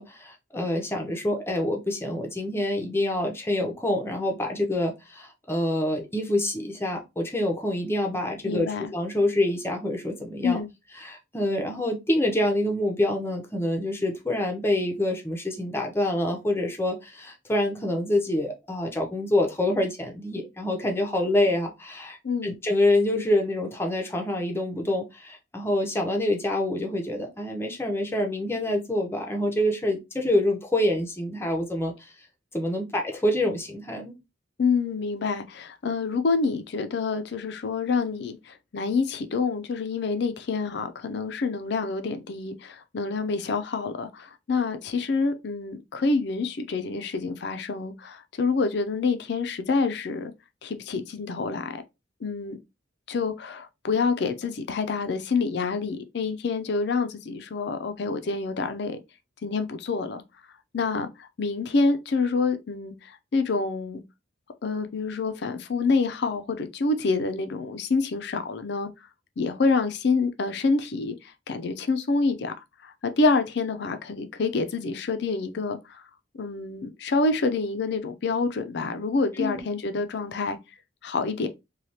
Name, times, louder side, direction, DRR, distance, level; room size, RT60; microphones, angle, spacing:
voice 1, 0.0-10.6 11.0-22.2 22.4-32.1 32.5-34.1 79.4-79.6, left 1 dB, 15° left, 0.6 m, -26 dB
voice 2, 8.4-8.9 10.4-10.7 22.2-22.5 34.6-50.3 50.6-51.8 52.2-52.6 53.1-59.0 59.4-60.2 60.7-64.0 64.6-68.9 69.4-72.5 72.8-76.0 76.3-80.6 81.0-81.5, left 4 dB, 60° left, 0.4 m, -27 dB
3.2 x 2.3 x 2.7 m
head